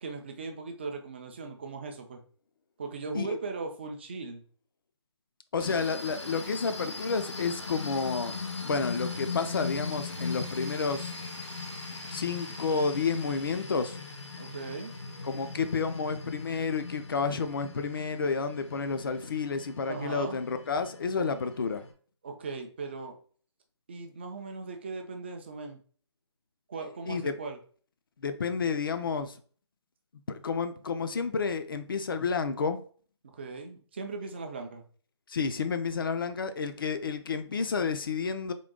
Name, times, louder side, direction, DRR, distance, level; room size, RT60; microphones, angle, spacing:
voice 1, 0.0-2.2 2.8-4.4 14.4-14.9 19.9-20.4 22.2-23.2 23.9-25.8 26.7-27.6 33.2-34.8, right 4 dB, 25° right, 0.4 m, -38 dB
voice 2, 5.5-8.3 8.6-11.1 12.1-14.0 15.3-21.8 27.1-27.3 28.2-29.4 30.3-32.8 35.3-38.5, left 5 dB, 50° left, 0.5 m, -30 dB
sound 1, 5.6-21.9, left 4 dB, 80° left, 0.9 m, -39 dB
3.7 x 2.2 x 3.6 m
figure-of-eight pair, 160°, 15 cm